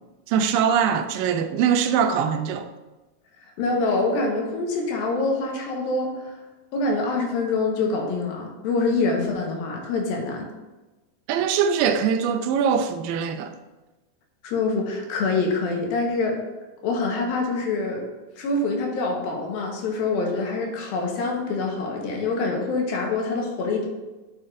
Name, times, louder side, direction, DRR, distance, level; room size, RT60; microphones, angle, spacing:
voice 1, 0.3-2.7 11.3-13.5, right 7 dB, 80° right, 2.3 m, -22 dB
voice 2, 3.6-6.4 6.7-10.5 14.4-16.4 16.8-18.0 18.4-23.9, left 3 dB, 85° left, 3.0 m, -25 dB
11.0 x 6.5 x 2.5 m
omnidirectional pair, 4.1 m